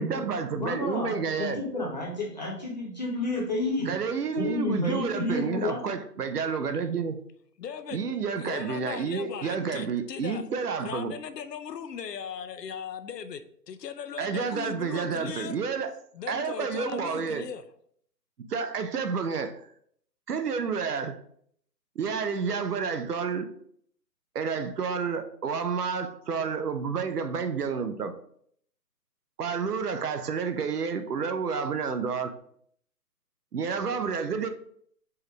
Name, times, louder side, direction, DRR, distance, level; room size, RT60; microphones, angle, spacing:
voice 1, 0.0-1.6 3.9-7.2 7.9-11.1 14.2-15.9 16.3-17.5 18.5-19.7 20.3-21.2 22.0-23.5 24.3-28.1 29.4-32.4 33.5-34.5, right 5 dB, 65° right, 0.6 m, -30 dB
voice 2, 0.6-3.9 4.4-5.8, left 2 dB, 25° left, 1.0 m, -30 dB
voice 3, 7.6-8.0 8.4-10.5 10.8-13.4 13.7-15.6 16.1-17.6, left 7 dB, 75° left, 0.6 m, -38 dB
4.6 x 3.2 x 3.2 m
hypercardioid pair, 175°, 50 cm